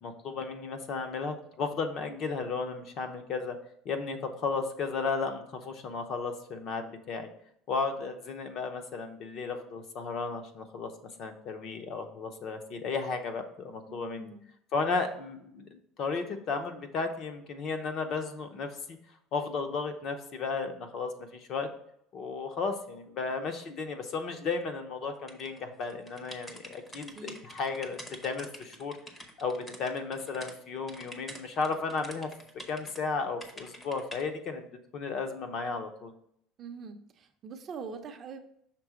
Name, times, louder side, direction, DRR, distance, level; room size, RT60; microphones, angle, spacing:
voice 1, 0.0-3.6 3.8-7.3 7.7-10.9 11.2-14.3 14.7-19.0 19.3-21.7 22.1-29.0 29.4-32.3 32.7-36.1, left 4 dB, 40° left, 6 dB, 0.7 m, -34 dB
voice 2, 13.9-14.5 27.1-27.4 36.6-38.4, right 5 dB, 30° right, 5 dB, 0.6 m, -43 dB
sound 1, 25.3-30.5 30.9-33.0 33.4-34.2, left 1 dB, 10° left, 0.7 m, -47 dB
6.0 x 3.6 x 4.9 m, 0.71 s
cardioid pair, 165°, 0 cm